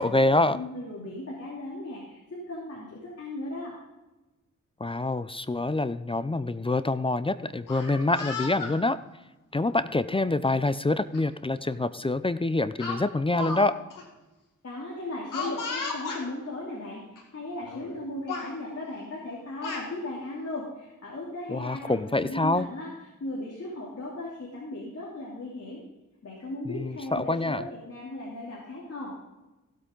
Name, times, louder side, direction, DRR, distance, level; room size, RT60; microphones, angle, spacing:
voice 1, 0.0-0.6 4.8-9.0 9.5-13.8 21.5-22.7 26.7-27.6, left 2 dB, 15° left, 14 dB, 0.5 m, -26 dB
voice 2, 0.5-3.7 14.6-22.9 23.2-25.8 26.2-29.1, left 1 dB, 50° left, -5 dB, 3.1 m, -37 dB
Speech, 7.6-8.8 9.7-9.9 11.1-11.2 11.6-11.8 12.8-13.7 13.9-14.0 15.3-16.2 17.2-17.3 17.6-18.0 18.3-18.5 19.3-19.9, left 4 dB, 90° left, 2.2 m, -35 dB
16.5 x 8.2 x 3.9 m, 1.1 s
cardioid pair, 85°, 31 cm